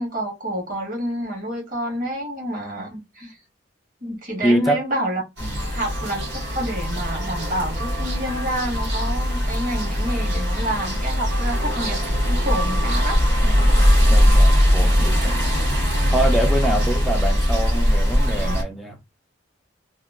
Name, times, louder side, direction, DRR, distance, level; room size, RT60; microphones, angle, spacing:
voice 1, 0.0-3.4 4.0-5.2 5.7-13.2, equal, 45° right, 1.5 m, -28 dB
voice 2, 4.4-4.8 5.4-5.7 13.4-13.8 14.1-15.4 16.1-19.0, right 1 dB, ahead, 0.3 m, -25 dB
sound 1, 5.4-18.6, equal, 65° right, 1.6 m, -20 dB
2.8 x 2.4 x 2.3 m
head